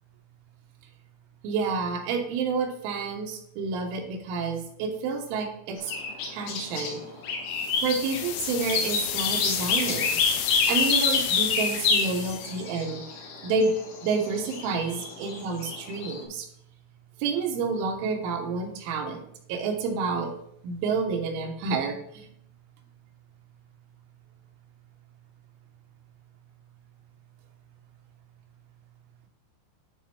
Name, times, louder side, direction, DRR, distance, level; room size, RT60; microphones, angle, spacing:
voice 1, 1.4-5.9 6.3-7.0 7.8-10.2 10.7-13.0 13.4-13.7 14.0-16.5 17.2-19.2 19.5-20.3 20.6-22.3, right 4 dB, 85° right, 3 dB, 3.5 m, -29 dB
sound 1, 5.9-6.9 7.2-16.2, left 5 dB, 70° left, 3.2 m, -27 dB
sound 2, 7.5-12.6, left 11 dB, 90° left, 3.2 m, -33 dB
11.5 x 4.1 x 4.4 m, 0.73 s
omnidirectional pair, 5.4 m